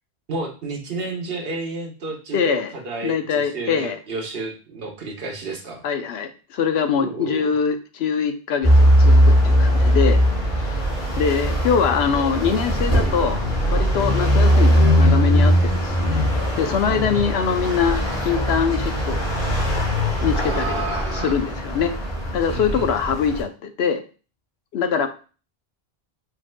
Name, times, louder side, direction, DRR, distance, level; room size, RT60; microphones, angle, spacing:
voice 1, 0.3-5.8 6.9-7.5 16.9-17.3 20.4-21.4 22.5-22.9, right 3 dB, 65° right, 2 dB, 1.2 m, -31 dB
voice 2, 2.3-2.7 3.0-4.0 5.8-10.2 10.5-10.9 11.2-13.4 13.7-16.3 16.6-19.3 20.2-21.9 22.3-24.0 24.7-25.1, left 6 dB, 85° left, 8 dB, 0.9 m, -23 dB
sound 1, 8.6-23.4, equal, 55° left, 2.6 m, -19 dB
4.6 x 4.4 x 2.2 m, 0.36 s
omnidirectional pair, 1.0 m